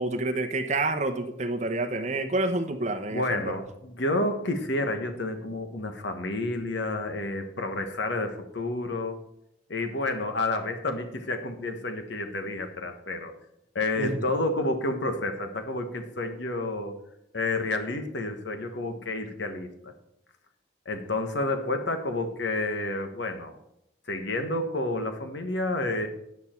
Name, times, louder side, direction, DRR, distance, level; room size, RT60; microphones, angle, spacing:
voice 1, 0.0-3.6 14.0-14.2, right 2 dB, 35° right, 5 dB, 0.9 m, -28 dB
voice 2, 3.1-9.2 9.7-13.3 13.7-17.0 17.3-19.9 20.8-23.6 24.1-26.1, left 2 dB, 70° left, 6 dB, 1.3 m, -30 dB
9.6 x 9.1 x 4.5 m, 0.78 s
head